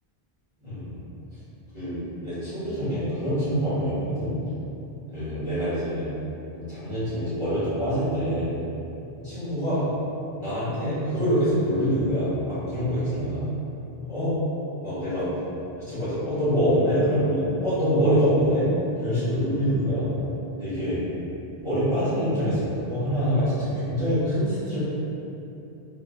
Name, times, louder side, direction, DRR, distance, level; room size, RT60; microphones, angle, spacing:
voice 1, 0.6-1.0 1.7-4.3 5.1-6.1 6.5-8.5 9.2-9.9 10.3-13.4 14.1-14.3 14.8-15.3 15.9-18.7 19.0-20.1 20.6-21.0 21.6-24.8, equal, 30° right, -17 dB, 1.7 m, -25 dB
3.6 x 2.9 x 2.3 m, 2.9 s
omnidirectional pair, 1.0 m